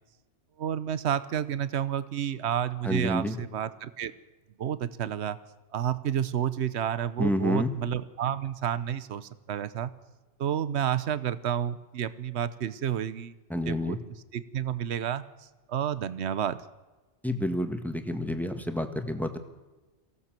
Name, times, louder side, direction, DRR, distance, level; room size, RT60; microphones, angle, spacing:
voice 1, 0.6-4.1 4.6-5.4 5.7-9.9 10.4-13.3 13.7-14.0 14.3-15.2 15.7-16.6, right 9 dB, 70° right, 15 dB, 1.1 m, -30 dB
voice 2, 2.8-3.4 7.2-7.7 13.5-14.0 17.2-19.4, equal, ahead, 6 dB, 1.6 m, -29 dB
23.0 x 16.5 x 7.6 m, 1.2 s
omnidirectional pair, 1.2 m